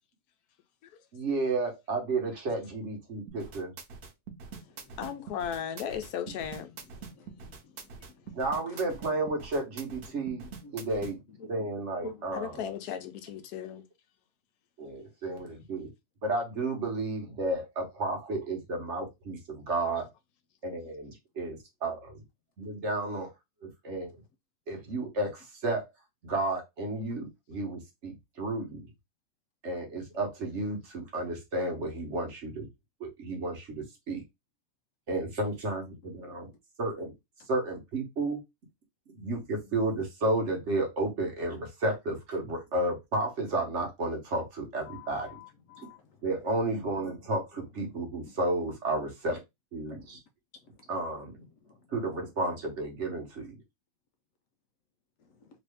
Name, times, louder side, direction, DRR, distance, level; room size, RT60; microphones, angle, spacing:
voice 1, 1.1-3.7 8.3-10.4 10.7-11.2 11.5-12.6 14.8-15.9 16.2-20.1 20.7-20.8 21.4-22.0 22.7-23.3 23.6-24.1 24.7-25.9 26.2-28.8 29.6-32.7 33.0-34.2 35.1-36.5 36.8-37.1 37.5-38.4 39.2-45.4 46.2-49.4 49.7-50.2 50.9-51.2 51.9-53.5, right 2 dB, 50° right, 1.2 m, -32 dB
sound 1, 3.3-11.1, right 5 dB, 80° right, 1.2 m, -44 dB
voice 2, 5.0-6.7 12.3-13.8, left 8 dB, 85° left, 1.1 m, -36 dB
voice 3, 7.1-7.5 10.3-10.7 11.4-11.5 12.0-12.2 44.9-46.0, left 2 dB, 65° left, 0.9 m, -46 dB
3.1 x 2.6 x 3.3 m
omnidirectional pair, 1.6 m